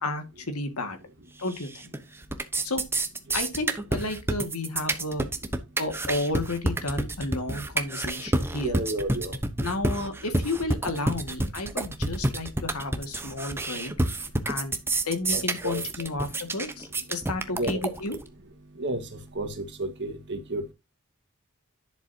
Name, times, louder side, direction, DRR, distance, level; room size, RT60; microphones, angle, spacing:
voice 1, 0.0-1.0 1.4-1.9 2.6-2.8 3.3-5.3 5.8-8.8 9.6-13.9 14.5-14.8 15.0-18.2, left 2 dB, 75° left, 2.0 m, -32 dB
sound 1, 1.5-2.0 2.2-18.2, right 2 dB, 10° right, 0.9 m, -28 dB
voice 2, 8.5-9.3 15.3-15.8 17.5-17.8 18.8-19.0 19.4-20.7, right 1 dB, 55° right, 1.7 m, -31 dB
10.5 x 7.1 x 2.8 m
head